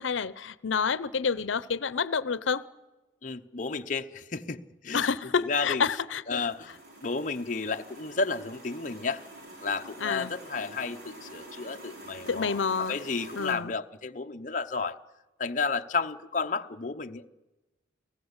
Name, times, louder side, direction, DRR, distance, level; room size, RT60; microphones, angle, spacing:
voice 1, 0.0-2.6 4.9-6.4 10.0-10.3 12.3-12.9 13.4-13.7, left 5 dB, 90° left, 0.7 m, -28 dB
voice 2, 3.2-5.1 5.4-5.8 6.3-6.7 7.0-9.2 9.6-15.0 15.4-17.3, left 4 dB, 40° left, 0.7 m, -32 dB
sound 1, 6.4-13.5, right 1 dB, 55° right, 5.1 m, -47 dB
29.5 x 18.5 x 8.1 m
head